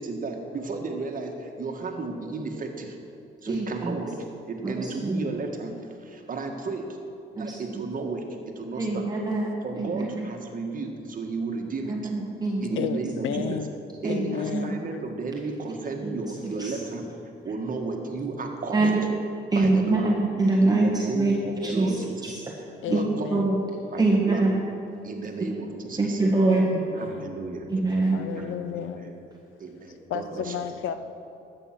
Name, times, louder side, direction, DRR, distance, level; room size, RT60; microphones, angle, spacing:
voice 1, 0.0-3.0 3.4-4.1 4.5-6.9 7.3-8.2 8.5-9.1 9.6-12.1 12.6-13.6 14.0-17.1 17.4-18.9 19.5-20.1 20.6-22.3 22.8-23.5 23.9-24.5 25.0-26.2 26.9-27.7 28.2-29.2 29.6-30.5, right 3 dB, 45° right, 1.7 m, -33 dB
voice 2, 3.5-4.0 4.6-5.2 7.4-7.8 8.8-10.3 11.9-12.8 13.3-13.4 14.0-14.7 16.0-16.2 16.6-16.7 18.7-18.9 19.5-21.4 21.6-21.9 22.2-22.4 22.9-23.0 23.3-23.6 24.0-24.6 26.0-26.8 27.7-28.2, right 2 dB, 20° right, 1.5 m, -24 dB
voice 3, 12.8-13.8 14.1-14.9 22.8-23.5 26.5-27.3 28.1-29.1 30.1-30.9, left 9 dB, 80° left, 0.8 m, -33 dB
12.5 x 7.9 x 6.0 m
cardioid pair, 90°, 20 cm